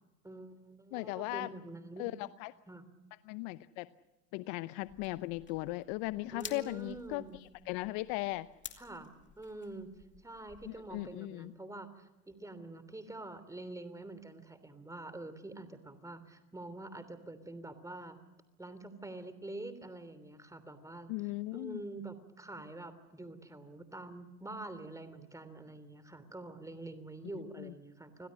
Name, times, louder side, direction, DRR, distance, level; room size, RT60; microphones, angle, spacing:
voice 1, 0.2-2.1 2.7-2.8 6.3-7.4 8.8-9.9 10.2-18.2 18.6-21.1 21.5-28.3, right 2 dB, 5° right, 12 dB, 3.2 m, -46 dB
voice 2, 0.9-1.5 2.0-2.5 3.3-3.9 4.3-8.5 10.6-11.5 21.1-21.8 27.3-27.7, left 20 dB, 45° left, 15 dB, 0.8 m, -38 dB
sound 1, 4.8-11.2, left 7 dB, 20° left, 2.5 m, -53 dB
29.0 x 21.5 x 6.5 m, 1.0 s
hypercardioid pair, 105°, 49 cm